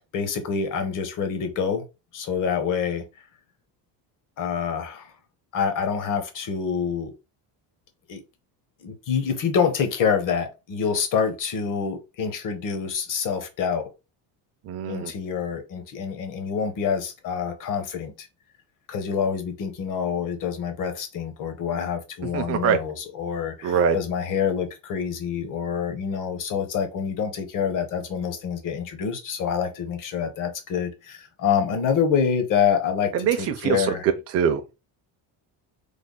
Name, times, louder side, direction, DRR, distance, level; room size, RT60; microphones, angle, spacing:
voice 1, 0.1-1.8 2.1-3.0 4.4-5.1 5.5-7.1 8.1-8.2 8.8-13.9 14.9-18.3 18.9-34.0, left 7 dB, 45° left, 0.8 m, -26 dB
voice 2, 14.6-15.1 22.3-22.8 23.6-24.0 33.1-34.8, right 7 dB, 35° right, 0.4 m, -23 dB
3.3 x 2.0 x 3.8 m
cardioid pair, 160°, 43 cm